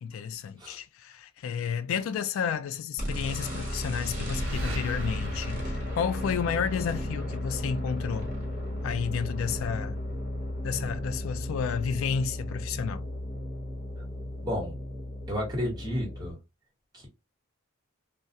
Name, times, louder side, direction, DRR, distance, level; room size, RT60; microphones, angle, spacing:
voice 1, 0.0-8.3 8.8-10.0 10.6-13.1, left 7 dB, 85° left, 0.3 m, -31 dB
sound 1, 3.0-16.3, left 1 dB, 40° right, 1.0 m, -34 dB
sound 2, 4.1-7.0, right 1 dB, 75° right, 0.6 m, -37 dB
voice 2, 14.4-14.8 15.3-16.4 16.9-17.1, left 1 dB, 20° right, 1.1 m, -31 dB
2.3 x 2.1 x 2.6 m
head